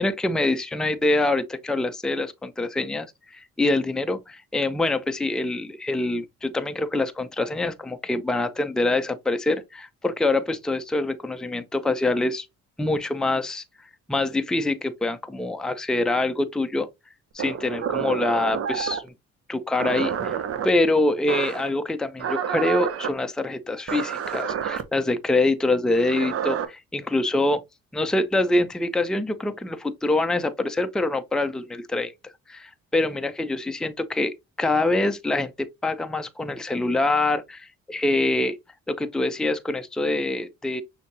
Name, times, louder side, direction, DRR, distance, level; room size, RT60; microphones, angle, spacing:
voice 1, 0.0-12.5 12.8-13.6 14.1-16.9 17.3-19.1 19.5-20.4 20.6-27.6 27.9-32.1 32.5-38.6 38.9-40.8, left 2 dB, ahead, 0.5 m, -25 dB
sound 1, 17.4-19.1 19.8-20.7 21.3-21.7 22.2-23.1 23.9-24.8 25.9-26.7, right 8 dB, 50° right, 0.8 m, -28 dB
6.2 x 2.8 x 2.7 m
cardioid pair, 90°, 30 cm